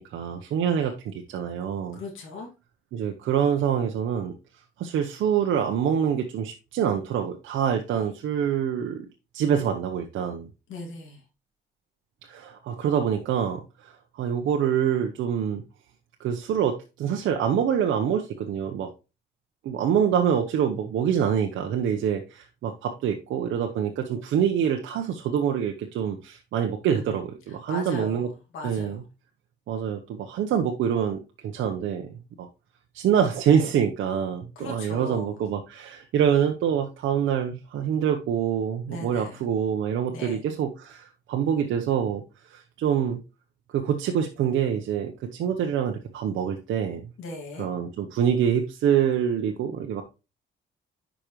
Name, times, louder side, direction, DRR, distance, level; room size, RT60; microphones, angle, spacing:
voice 1, 0.0-2.0 2.9-4.3 4.8-9.1 9.3-10.5 12.3-15.6 16.2-18.9 19.6-28.3 28.6-29.0 29.7-31.2 31.5-32.1 32.4-32.5 32.9-42.2 42.5-43.2 43.7-47.1 47.6-50.0, right 8 dB, 80° right, 3 dB, 0.9 m, -25 dB
voice 2, 1.9-2.5 10.7-11.2 26.8-27.2 27.5-29.0 34.6-35.4 38.9-39.4 40.1-40.4 47.2-47.7, left 2 dB, 85° left, 0 dB, 2.1 m, -38 dB
9.9 x 5.1 x 3.0 m, 0.29 s
cardioid pair, 90°, 20 cm